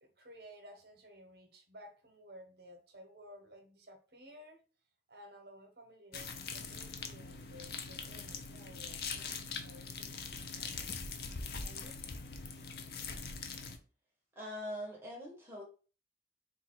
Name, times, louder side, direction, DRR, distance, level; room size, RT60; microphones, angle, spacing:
voice 1, 0.0-4.6 5.1-10.9 11.6-11.9, equal, 65° right, 4 dB, 1.0 m, -55 dB
sound 1, 6.1-13.8, left 5 dB, 60° left, 0.6 m, -42 dB
voice 2, 14.3-15.6, equal, 15° right, -3 dB, 1.1 m, -42 dB
4.0 x 2.4 x 4.4 m, 0.36 s
head